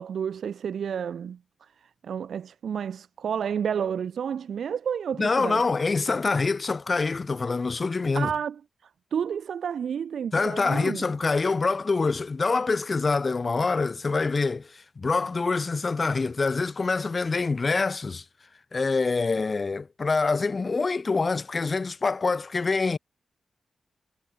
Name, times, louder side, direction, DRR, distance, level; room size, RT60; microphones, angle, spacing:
voice 1, 0.0-5.6 8.1-8.6 9.1-11.1, right 8 dB, 80° right, 1.0 m, -31 dB
voice 2, 5.2-8.3 10.3-18.2 18.7-23.0, left 4 dB, 45° left, 0.9 m, -25 dB
cardioid pair, 55°, 0 cm